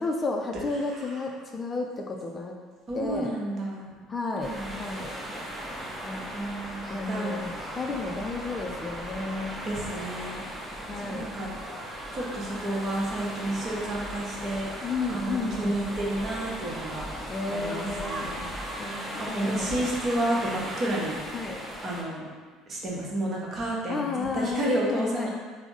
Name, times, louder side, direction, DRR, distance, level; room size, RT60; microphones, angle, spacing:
voice 1, 0.0-2.6 2.9-3.3 4.1-5.1 6.1-6.3 6.9-9.6 10.9-11.3 14.8-15.7 17.3-18.3 18.8-19.9 21.3-21.6 23.9-25.3, left 3 dB, 25° left, 1 dB, 0.4 m, -32 dB
voice 2, 2.9-3.9 4.4-4.8 6.3-7.4 9.6-10.4 11.1-11.5 12.1-14.7 15.1-17.1 17.5-18.4 19.2-21.2 21.8-22.2 22.7-25.3, right 1 dB, 40° right, -3 dB, 0.9 m, -31 dB
sound 1, 4.4-22.0, equal, 5° right, 0.8 m, -37 dB
3.4 x 2.0 x 3.9 m, 1.5 s
hypercardioid pair, 65°, 0 cm